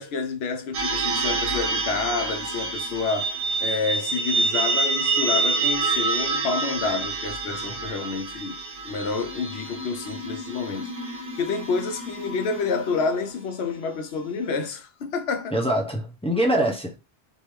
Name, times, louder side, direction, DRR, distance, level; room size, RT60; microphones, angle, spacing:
voice 1, 0.0-8.6 8.8-15.5, left 4 dB, 70° left, 0.9 m, -29 dB
sound 1, 0.7-13.3, right 3 dB, 75° right, 1.1 m, -27 dB
voice 2, 15.5-17.0, right 1 dB, 10° left, 0.4 m, -24 dB
3.4 x 2.6 x 3.0 m
omnidirectional pair, 1.2 m